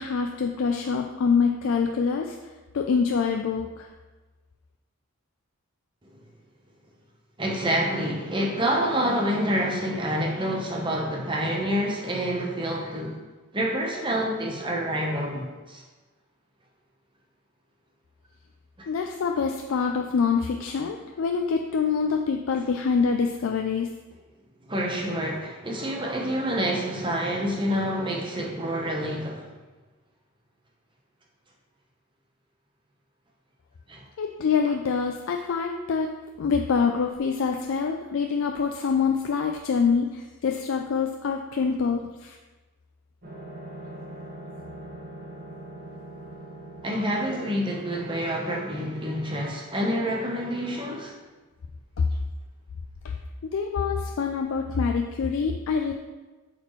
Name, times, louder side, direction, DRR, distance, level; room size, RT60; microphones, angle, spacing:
voice 1, 0.0-2.4 2.7-3.9 18.9-23.9 34.2-36.1 36.4-42.4 52.0-52.1 53.0-53.1 53.4-55.9, left 5 dB, 60° left, 3 dB, 0.3 m, -25 dB
voice 2, 7.4-13.2 13.5-15.8 18.8-18.9 24.7-29.5 33.9-34.0 46.8-51.1, equal, 20° right, -1 dB, 0.9 m, -27 dB
sound 1, 43.2-49.5, right 1 dB, 40° right, 1.4 m, -42 dB
8.1 x 4.3 x 3.1 m, 1.2 s
head